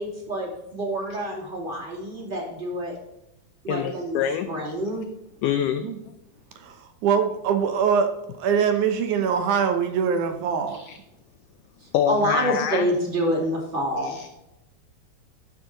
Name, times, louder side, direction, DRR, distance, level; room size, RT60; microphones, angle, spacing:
voice 1, 0.0-2.9 3.6-5.0 11.8-14.2, equal, 15° right, -3 dB, 2.3 m, -27 dB
voice 2, 3.7-4.5 5.4-5.9 10.7-11.0 11.9-12.9 14.0-14.3, left 9 dB, 85° left, 8 dB, 1.8 m, -26 dB
voice 3, 7.0-8.1 8.4-10.8, right 7 dB, 70° right, 7 dB, 2.0 m, -23 dB
13.0 x 6.8 x 3.8 m, 0.88 s
omnidirectional pair, 4.4 m